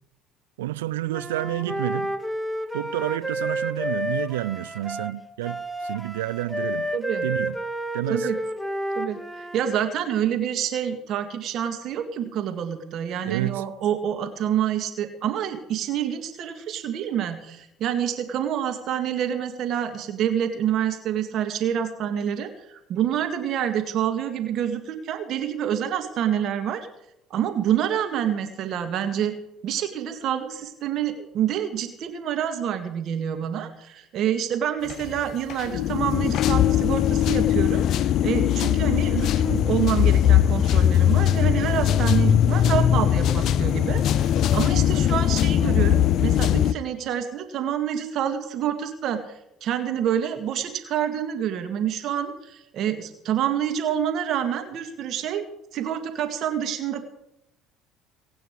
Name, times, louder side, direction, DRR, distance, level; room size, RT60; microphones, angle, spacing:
voice 1, 0.6-2.2 2.7-6.9 7.2-7.5 7.9-8.3 13.3-13.6, right 15 dB, 85° right, 0.5 m, -29 dB
Wind instrument woodwind instrument, 1.1-9.6, equal, 5° right, 1.9 m, -30 dB
voice 2, 6.9-7.3 8.1-8.4 9.0-26.8 27.3-29.3 29.6-55.4 55.7-57.1, right 9 dB, 60° right, 2.0 m, -27 dB
sound 1, 34.9-35.2 35.5-46.7, left 10 dB, 60° left, 0.6 m, -20 dB
23.0 x 9.3 x 4.8 m
hypercardioid pair, 65°, 0 cm